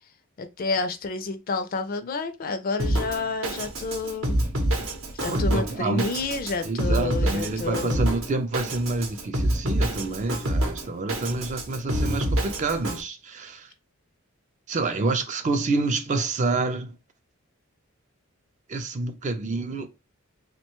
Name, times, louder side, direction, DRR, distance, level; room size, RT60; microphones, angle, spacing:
voice 1, 0.4-4.4 5.1-8.0, left 3 dB, 45° left, 0.4 m, -29 dB
Drum kit, 2.8-13.0, right 1 dB, 65° right, 0.7 m, -27 dB
voice 2, 5.3-6.1 6.7-13.7 14.7-16.9 18.7-19.9, right 3 dB, 35° right, 0.4 m, -28 dB
2.9 x 2.2 x 2.9 m
head